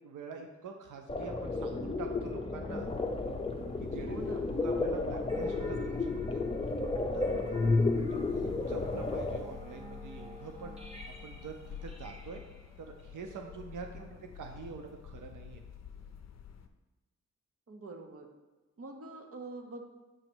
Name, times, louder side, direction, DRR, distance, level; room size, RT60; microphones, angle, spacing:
voice 1, 0.0-2.9 3.8-4.2 4.6-6.4 7.1-7.5 7.9-10.8 11.1-12.4 12.8-14.0 14.3-15.6, right 5 dB, 85° right, 3 dB, 0.6 m, -45 dB
sound 1, 1.1-9.4, left 3 dB, 20° left, 0.6 m, -32 dB
sound 2, 2.7-16.7, left 7 dB, 60° left, 0.5 m, -48 dB
voice 2, 4.1-4.5 14.0-14.2 17.7-18.3 18.8-19.8, right 3 dB, 50° right, 3 dB, 0.9 m, -45 dB
sound 3, 5.3-14.2, equal, 20° right, 1.0 m, -52 dB
7.7 x 3.0 x 6.1 m, 1.1 s
wide cardioid pair, 115°, 30 cm